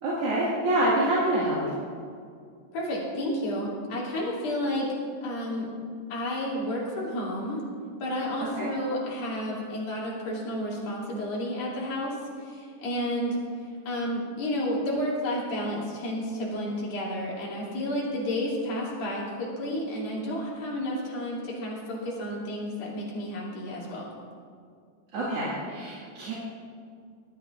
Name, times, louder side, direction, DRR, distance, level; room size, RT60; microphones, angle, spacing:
voice 1, 0.0-1.7 8.6-8.7 25.1-26.3, right 1 dB, 50° right, -7 dB, 2.8 m, -26 dB
voice 2, 2.7-4.9 5.2-5.7 6.1-7.6 8.0-13.4 13.9-24.1, equal, 80° left, -5 dB, 4.9 m, -31 dB
20.5 x 13.0 x 2.6 m, 2.2 s
omnidirectional pair, 4.0 m